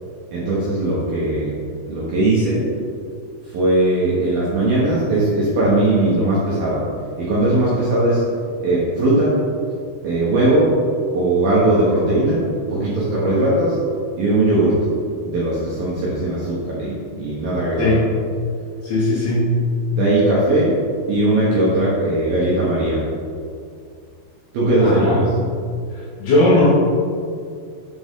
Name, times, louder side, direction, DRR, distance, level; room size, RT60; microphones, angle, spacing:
voice 1, 0.3-1.5 1.9-2.6 3.4-6.8 7.2-8.2 8.6-9.3 10.0-10.7 11.1-12.4 12.7-13.8 14.2-14.8 15.2-17.9 20.0-20.7 21.1-23.0 24.5-25.2, right 1 dB, 70° right, -8 dB, 2.3 m, -19 dB
voice 2, 18.8-19.5 24.8-25.2 26.2-26.7, left 2 dB, 70° left, -7 dB, 2.6 m, -17 dB
7.7 x 5.9 x 3.7 m, 2.3 s
omnidirectional pair, 5.8 m